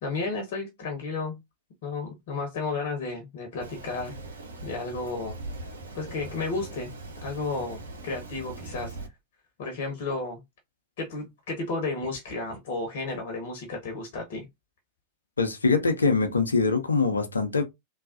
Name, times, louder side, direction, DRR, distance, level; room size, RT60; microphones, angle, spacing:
voice 1, 0.0-1.4 1.8-4.2 4.6-5.4 5.9-6.9 7.2-9.0 9.6-10.4 11.0-14.5, left 3 dB, 55° left, 0.9 m, -32 dB
Rain, 3.6-9.1, right 2 dB, 70° right, 0.7 m, -41 dB
voice 2, 15.4-17.6, left 4 dB, 75° left, 0.6 m, -23 dB
3.4 x 2.2 x 2.5 m
figure-of-eight pair, 90°, 0 cm